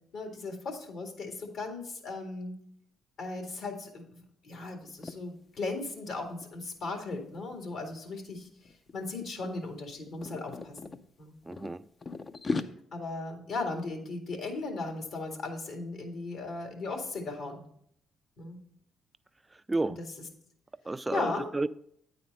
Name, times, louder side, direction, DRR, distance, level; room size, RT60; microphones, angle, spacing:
voice 1, 0.1-2.6 3.2-8.5 8.9-10.8 11.2-11.3 12.9-17.6 18.4-18.6 20.0-20.1 21.1-21.5, left 3 dB, 70° left, 3 dB, 1.9 m, -37 dB
sound 1, 4.9-5.2 5.6-5.8 6.1-8.0 8.6-8.9 9.2-11.0 11.5-12.6, left 3 dB, 40° left, 0.5 m, -37 dB
voice 2, 11.5-11.8 19.7-20.0 20.9-21.7, right 2 dB, 20° right, 15 dB, 0.3 m, -31 dB
9.1 x 4.3 x 5.3 m, 0.68 s
supercardioid pair, 60°, 0 cm